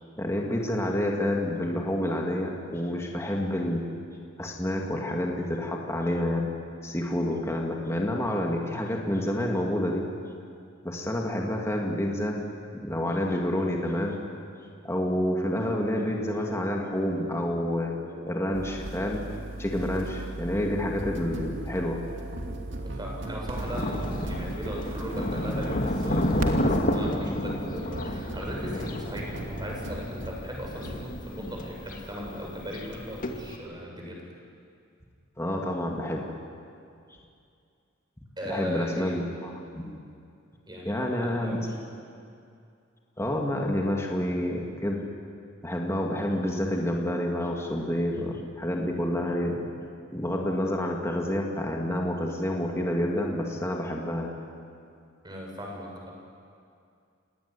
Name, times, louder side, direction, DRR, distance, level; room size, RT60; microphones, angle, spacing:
voice 1, 0.2-3.8 4.4-6.5 6.8-10.1 10.8-12.4 12.7-14.2 14.8-17.9 18.3-19.3 19.6-22.0 35.4-36.4 38.4-40.0 40.8-41.6 43.2-45.0 45.6-49.6 50.1-54.4, left 1 dB, 15° left, 0 dB, 2.4 m, -28 dB
sound 1, 16.2-30.5 30.8-31.1, right 1 dB, 60° right, 2.7 m, -40 dB
sound 2, 18.5-26.5, right 1 dB, 85° right, 2.9 m, -38 dB
voice 2, 22.8-34.2 38.4-39.2 40.7-41.7 55.2-56.1, equal, 20° right, -1 dB, 7.0 m, -38 dB
Thunder, 23.6-33.6, left 1 dB, 40° left, 2.0 m, -31 dB
29.5 x 18.5 x 10.0 m, 2.4 s
head